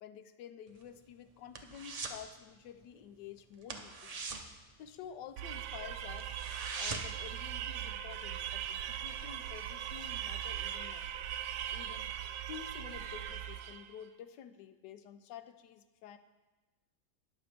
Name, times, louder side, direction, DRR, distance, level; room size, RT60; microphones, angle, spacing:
voice 1, 0.0-4.2 4.8-6.4 6.8-11.1 11.7-12.1 12.5-16.2, left 9 dB, 80° left, 11 dB, 1.2 m, -50 dB
sound 1, 0.7-2.3 2.5-2.8 3.1-3.3 3.6-5.5 5.8-5.9 6.2-7.3 7.6-7.7, right 4 dB, 55° right, 0.4 m, -42 dB
sound 2, 5.4-13.9, right 10 dB, 85° right, 1.2 m, -40 dB
18.5 x 6.7 x 3.4 m, 1.2 s
omnidirectional pair, 1.8 m